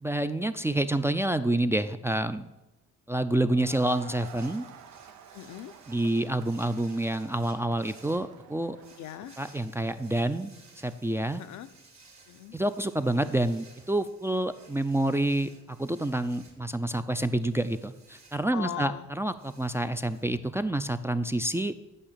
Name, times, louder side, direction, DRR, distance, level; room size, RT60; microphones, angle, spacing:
voice 1, 0.0-2.5 3.1-4.7 5.9-8.8 9.4-10.5 10.8-11.4 12.5-21.7, right 1 dB, 10° right, 8 dB, 0.4 m, -28 dB
Crowd, 3.5-10.0, right 8 dB, 90° right, 0.8 m, -51 dB
sound 1, 3.6-21.0, right 3 dB, 65° right, 2.4 m, -57 dB
voice 2, 5.3-5.8 9.0-9.4 11.4-11.7 12.3-12.6 18.5-19.1, left 12 dB, 75° left, 11 dB, 0.6 m, -39 dB
8.8 x 5.6 x 6.7 m, 0.97 s
cardioid pair, 90°, 30 cm